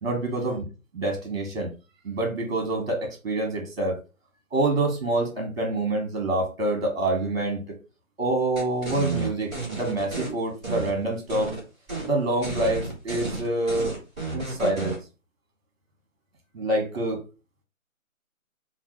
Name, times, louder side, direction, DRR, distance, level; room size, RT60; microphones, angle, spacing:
voice 1, 0.0-0.6 0.9-1.7 2.0-4.0 4.5-7.8 8.2-11.5 12.0-14.0 14.3-15.0 16.5-17.2, right 2 dB, 45° right, 1.3 m, -26 dB
sound 1, 8.5-10.3 10.6-11.6 11.9-12.1 12.4-15.0, right 3 dB, 5° left, 0.7 m, -32 dB
3.2 x 2.2 x 3.0 m
figure-of-eight pair, 160°, 41 cm